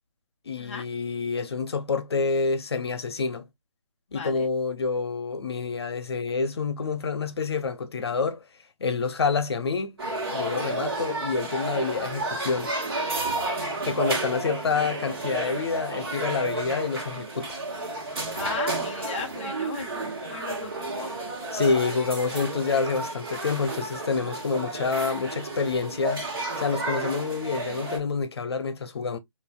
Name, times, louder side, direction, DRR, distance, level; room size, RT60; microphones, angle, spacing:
voice 1, 0.5-3.5 4.1-8.4 8.8-9.9 10.3-12.7 13.8-17.6 21.5-26.3 26.6-29.2, left 4 dB, 50° left, 0.8 m, -27 dB
voice 2, 4.1-4.5 18.3-21.1, left 5 dB, 20° left, 0.5 m, -37 dB
sound 1, 10.0-28.0, right 2 dB, 45° right, 1.6 m, -31 dB
5.2 x 2.6 x 2.2 m
figure-of-eight pair, 155°, 17 cm